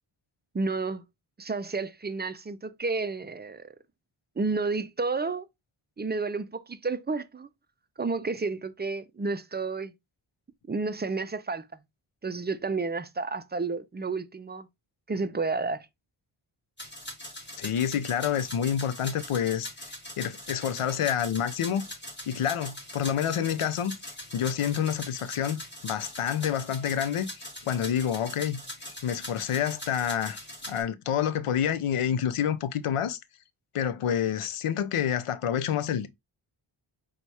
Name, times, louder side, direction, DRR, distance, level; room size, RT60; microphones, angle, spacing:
voice 1, 0.5-1.0 1.4-3.7 4.4-5.5 6.0-7.5 8.0-9.9 10.7-11.7 12.2-14.7 15.1-15.9, right 3 dB, 25° right, 0.3 m, -31 dB
sound 1, 16.8-30.8, left 1 dB, 20° left, 1.9 m, -42 dB
voice 2, 17.6-19.7 20.2-21.8 22.3-27.3 27.6-28.6 29.0-30.4 30.7-33.2 33.7-36.1, left 9 dB, 90° left, 0.6 m, -28 dB
4.1 x 2.2 x 4.6 m
wide cardioid pair, 65°, 50 cm